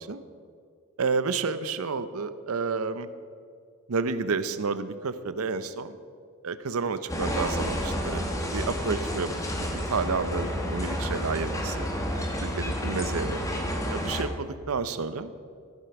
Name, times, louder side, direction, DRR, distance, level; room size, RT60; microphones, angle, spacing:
voice 1, 1.0-3.1 3.9-6.0 6.4-8.2 8.5-9.3 9.6-11.9 12.4-13.4 13.8-15.3, right 4 dB, 80° right, 13 dB, 0.7 m, -30 dB
sound 1, 7.1-14.2, equal, 15° left, 1.2 m, -30 dB
14.5 x 7.8 x 5.9 m, 2.2 s
head